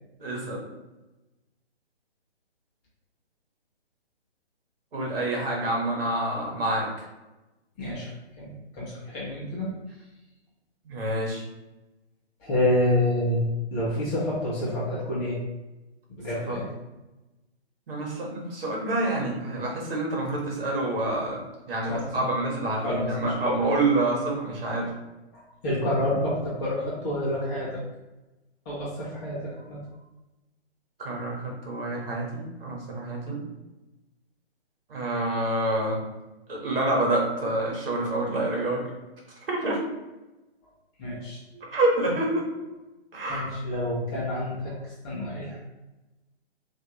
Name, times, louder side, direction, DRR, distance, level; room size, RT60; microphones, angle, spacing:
voice 1, 0.2-0.6 4.9-7.1 10.8-11.4 16.3-16.6 17.9-24.9 31.0-33.4 34.9-36.0 36.5-38.9 39.5-39.8 41.7-42.5 43.1-43.5, right 2 dB, 60° right, -1 dB, 1.4 m, -27 dB
voice 2, 7.8-9.7 12.4-15.4 16.2-16.7 21.9-22.2 22.8-23.7 25.3-27.8 28.7-29.8 41.0-41.6 43.3-45.6, left 1 dB, 15° left, -6 dB, 0.7 m, -28 dB
4.1 x 2.6 x 2.9 m, 1.1 s
figure-of-eight pair, 140°, 32 cm